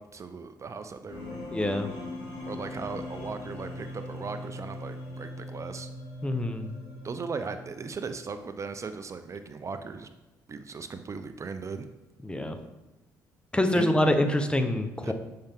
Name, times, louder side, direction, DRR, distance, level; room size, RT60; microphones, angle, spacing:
voice 1, 0.0-1.5 2.5-5.9 7.0-10.1 10.5-11.8 13.8-13.9 15.0-15.1, right 4 dB, 40° right, 9 dB, 0.6 m, -38 dB
sound 1, 1.1-8.1, left 1 dB, 70° left, 2.9 m, -40 dB
voice 2, 1.5-1.9 6.2-6.7 12.2-12.6 13.5-15.1, left 1 dB, 15° left, 7 dB, 0.9 m, -25 dB
8.7 x 5.7 x 3.6 m, 1.1 s
supercardioid pair, 65°, 8 cm